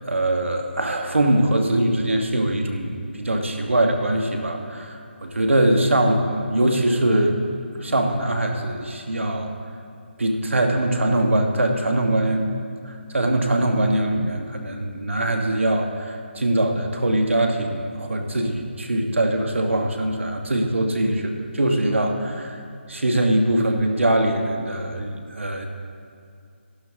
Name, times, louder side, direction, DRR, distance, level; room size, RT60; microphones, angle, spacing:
voice 1, 0.1-7.4 7.8-9.5 10.2-12.5 12.8-22.6 22.9-25.7, right 1 dB, 85° right, 3 dB, 1.6 m, -22 dB
13.5 x 12.0 x 3.7 m, 2.4 s
figure-of-eight pair, 165°, 7 cm